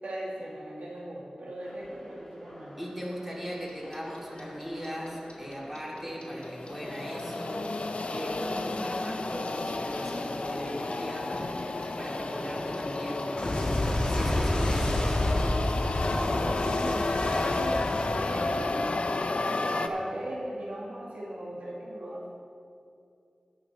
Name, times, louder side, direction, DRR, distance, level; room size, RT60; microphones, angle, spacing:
voice 1, 0.0-2.8 16.1-19.1 19.6-22.3, right 1 dB, 90° right, -4 dB, 2.0 m, -38 dB
sound 1, 1.6-16.8, equal, 10° left, 2.1 m, -46 dB
voice 2, 2.8-7.8 8.1-13.4 14.0-15.1, equal, 10° right, -4 dB, 2.4 m, -38 dB
Clock, 3.7-6.7 7.0-9.9 10.2-19.1, left 1 dB, 50° left, 1.7 m, -30 dB
sound 2, 6.4-19.9, left 3 dB, 65° left, 0.5 m, -32 dB
17.5 x 6.0 x 4.1 m, 2.5 s
wide cardioid pair, 80°, 2 cm